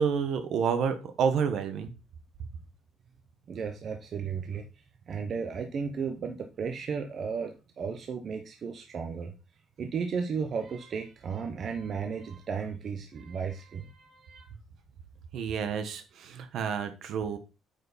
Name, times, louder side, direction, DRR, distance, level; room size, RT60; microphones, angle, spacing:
voice 1, 0.0-1.9 15.3-17.4, right 6 dB, 55° right, 9 dB, 1.3 m, -29 dB
voice 2, 3.5-4.6 5.1-9.3 9.8-14.4, right 6 dB, 35° right, 4 dB, 0.9 m, -34 dB
8.8 x 5.6 x 4.2 m, 0.29 s
cardioid pair, 175°, 0 cm